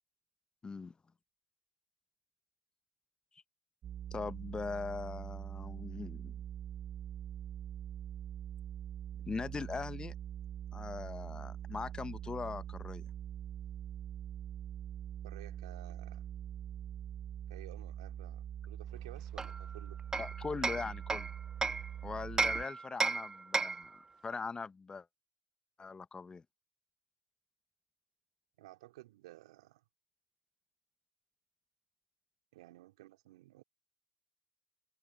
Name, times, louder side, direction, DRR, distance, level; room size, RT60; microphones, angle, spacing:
voice 1, 0.6-0.9 4.1-6.3 9.3-10.1 10.7-13.0 20.2-21.3 22.0-25.1 25.8-26.4, left 4 dB, 25° left, 1.0 m, -41 dB
sound 1, 3.8-22.7, right 9 dB, 50° right, 1.6 m, -44 dB
voice 2, 15.2-16.3 17.5-20.0 28.6-29.8 32.5-33.6, right 17 dB, 85° right, 3.3 m, -54 dB
Hammer, 19.4-21.9 22.4-23.9, right 3 dB, 20° right, 0.5 m, -34 dB
hypercardioid pair, 65°, 3 cm